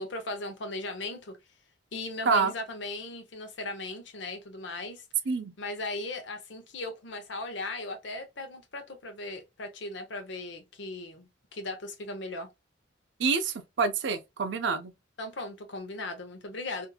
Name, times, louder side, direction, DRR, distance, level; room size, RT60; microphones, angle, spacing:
voice 1, 0.0-1.4 1.9-5.0 5.6-12.5 15.2-16.9, left 2 dB, 60° left, 0.7 m, -37 dB
voice 2, 13.2-14.9, right 5 dB, 60° right, 0.4 m, -27 dB
2.8 x 2.5 x 2.2 m
head